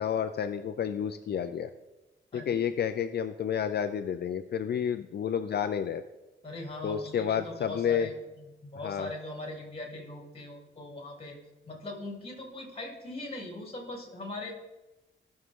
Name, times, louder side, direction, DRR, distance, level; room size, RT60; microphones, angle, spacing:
voice 1, 0.0-1.7 2.3-6.0 6.8-8.1 8.8-9.1, left 8 dB, 55° left, 9 dB, 0.5 m, -30 dB
voice 2, 6.4-11.4 11.6-14.5, left 2 dB, 30° left, 0 dB, 3.4 m, -40 dB
16.5 x 6.6 x 3.7 m, 1.1 s
cardioid pair, 105°, 20 cm